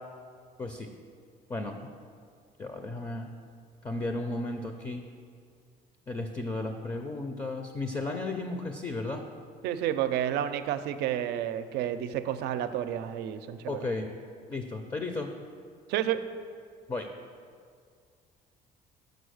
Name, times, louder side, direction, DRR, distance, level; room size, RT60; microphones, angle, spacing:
voice 1, 2.6-3.3 3.8-5.0 6.1-9.2 13.7-14.1 14.5-15.3 16.9-17.1, left 2 dB, 20° left, 5 dB, 0.5 m, -34 dB
voice 2, 9.6-13.8 15.9-16.2, right 11 dB, 80° right, 11 dB, 0.4 m, -30 dB
6.2 x 5.1 x 6.4 m, 2.2 s
cardioid pair, 110°, 17 cm